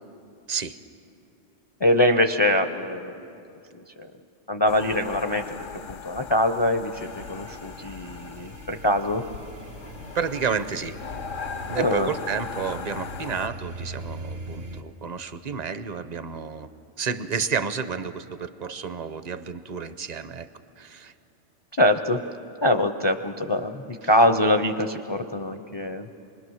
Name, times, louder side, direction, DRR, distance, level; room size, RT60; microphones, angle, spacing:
voice 1, 0.5-0.8 10.1-11.0 11.7-16.7 17.0-20.5 20.8-21.1 24.0-24.1, right 6 dB, 45° right, 12 dB, 0.6 m, -30 dB
voice 2, 1.8-3.3 3.7-4.1 4.5-9.2 11.8-12.1 21.8-22.2 22.6-26.1, left 1 dB, 35° left, 7 dB, 0.4 m, -23 dB
sound 1, 4.7-13.5, left 7 dB, 90° left, 1.1 m, -39 dB
sound 2, 6.9-14.8, right 2 dB, 75° right, 1.5 m, -41 dB
26.0 x 21.0 x 6.3 m, 2.8 s
omnidirectional pair, 1.3 m